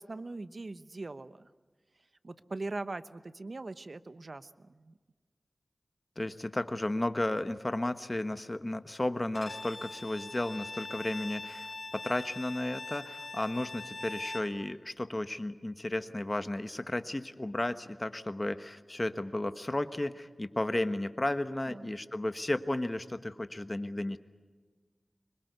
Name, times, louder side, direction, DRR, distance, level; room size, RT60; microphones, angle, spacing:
voice 1, 0.0-1.5 2.2-4.9 21.3-21.9, right 2 dB, 55° right, 13 dB, 0.9 m, -41 dB
voice 2, 6.2-24.2, left 1 dB, 30° left, 11 dB, 1.3 m, -33 dB
Bowed string instrument, 9.3-14.6, left 3 dB, 55° left, 4.3 m, -42 dB
25.5 x 22.0 x 8.2 m, 1.4 s
wide cardioid pair, 65°, 0 cm